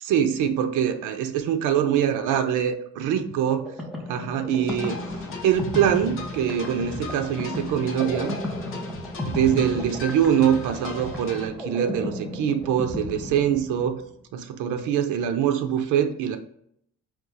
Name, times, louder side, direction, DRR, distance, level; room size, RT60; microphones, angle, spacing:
voice 1, 0.0-3.6 4.1-5.0 5.4-8.4 9.3-14.0 14.3-16.4, right 9 dB, 80° right, 7 dB, 0.5 m, -23 dB
sound 1, 3.5-14.0, left 1 dB, ahead, 0.6 m, -34 dB
sound 2, 4.7-11.5, left 3 dB, 45° left, 0.8 m, -39 dB
4.5 x 2.3 x 3.9 m, 0.69 s
cardioid pair, 140°, 30 cm